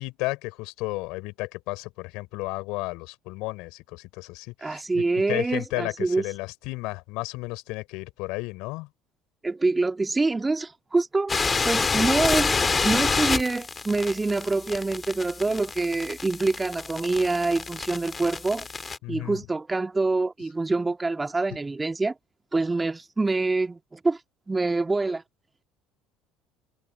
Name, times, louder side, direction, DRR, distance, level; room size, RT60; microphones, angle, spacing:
voice 1, 0.0-8.9 19.0-19.4, left 23 dB, 65° left, 4.4 m, -33 dB
voice 2, 4.6-6.3 9.4-18.7 19.1-22.1 22.5-24.2 24.5-25.2, right 3 dB, 20° right, 1.9 m, -26 dB
sound 1, 11.3-19.0, left 4 dB, 25° left, 2.8 m, -28 dB
hypercardioid pair, 65°, 0 cm